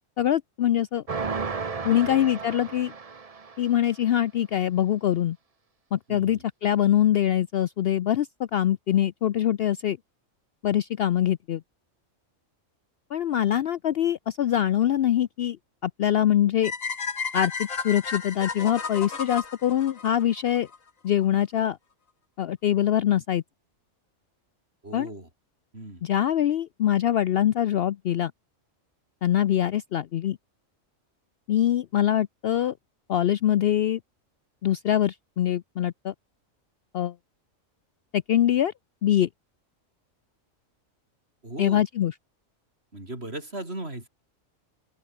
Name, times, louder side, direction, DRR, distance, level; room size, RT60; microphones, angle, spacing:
voice 1, 0.2-1.0 1.8-2.9 3.6-5.4 5.9-10.0 10.6-11.6 13.1-15.6 15.8-16.7 17.3-20.7 21.0-21.8 22.4-23.4 24.9-25.1 26.0-28.3 29.2-30.4 31.5-32.7 33.1-34.0 34.6-36.1 36.9-37.1 38.1-38.7 39.0-39.3 41.6-42.1, left 11 dB, 65° left, 0.7 m, -23 dB
sound 1, 1.1-3.8, right 5 dB, 30° right, 1.0 m, -33 dB
voice 2, 6.1-6.4 24.8-25.3 25.7-26.0 41.4-41.8 42.9-44.1, right 1 dB, 50° right, 6.0 m, -37 dB
sound 2, 16.6-20.8, left 5 dB, 90° left, 2.4 m, -32 dB
open air
omnidirectional pair, 1.3 m